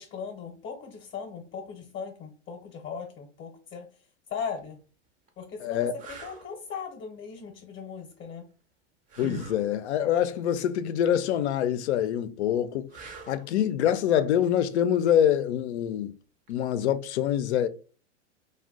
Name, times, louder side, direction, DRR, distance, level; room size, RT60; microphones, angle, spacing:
voice 1, 0.0-3.9 4.3-4.8 5.4-8.5, left 6 dB, 35° left, 0.7 m, -38 dB
sound 1, 4.4-4.6 5.3-5.4 6.0-6.5 9.1-9.6 12.9-13.5 16.5-16.6, right 4 dB, 25° right, 0.6 m, -41 dB
voice 2, 5.6-5.9 9.2-12.9 13.3-16.1 16.5-17.7, left 10 dB, 70° left, 0.5 m, -25 dB
2.5 x 2.2 x 3.5 m
hypercardioid pair, 110°, 35 cm